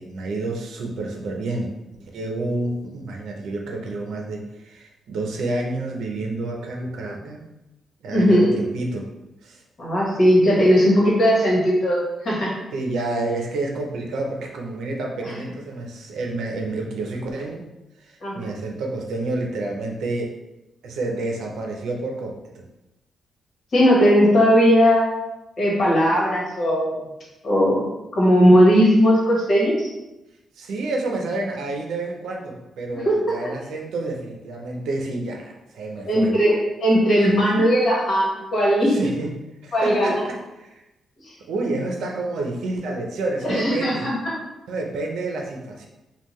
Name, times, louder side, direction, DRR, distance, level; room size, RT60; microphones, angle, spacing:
voice 1, 0.0-7.4 8.0-9.1 9.4-9.6 12.7-17.7 18.0-20.3 20.8-22.6 30.5-36.3 37.3-37.5 38.9-40.8 41.5-44.1 44.7-45.9, right 2 dB, 80° right, 1 dB, 0.7 m, -29 dB
voice 2, 8.1-8.6 9.8-12.5 18.2-18.5 23.7-25.1 25.6-26.9 27.4-29.9 32.9-33.4 36.0-39.0 39.7-40.2 43.4-44.1, equal, 40° left, -5 dB, 1.5 m, -18 dB
5.5 x 2.4 x 3.1 m, 0.97 s
wide cardioid pair, 165°, 0 cm